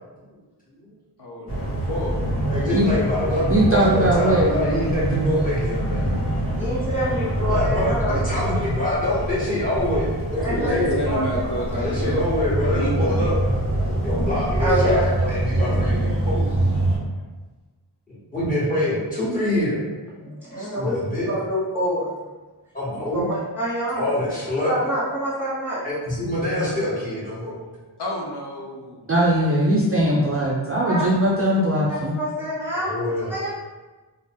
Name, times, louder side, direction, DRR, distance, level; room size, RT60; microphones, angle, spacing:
voice 1, 1.2-2.2 10.3-12.3 12.6-13.3 28.0-29.0 29.6-29.7, left 1 dB, 65° left, -4 dB, 0.7 m, -30 dB
sound 1, 1.5-17.0, right 1 dB, 50° left, 1.2 m, -25 dB
voice 2, 2.5-6.0 7.5-11.0 11.6-13.4 14.0-16.5 18.1-19.8 20.6-21.3 22.7-23.3 24.0-24.8 25.8-27.6 31.9-32.1 32.8-33.3, left 1 dB, 20° left, -9 dB, 1.3 m, -25 dB
voice 3, 3.5-4.4 29.1-32.1, right 1 dB, 35° right, -4 dB, 0.4 m, -20 dB
voice 4, 6.5-8.2 10.4-10.8 11.1-11.4 11.7-11.8 14.6-15.1 15.5-16.2 20.2-20.9 21.3-22.1 22.9-24.2 24.6-25.8 30.8-31.0 31.9-32.9 33.3-33.5, equal, 5° right, -9 dB, 1.2 m, -27 dB
2.5 x 2.0 x 3.4 m, 1.2 s
wide cardioid pair, 55°, 43 cm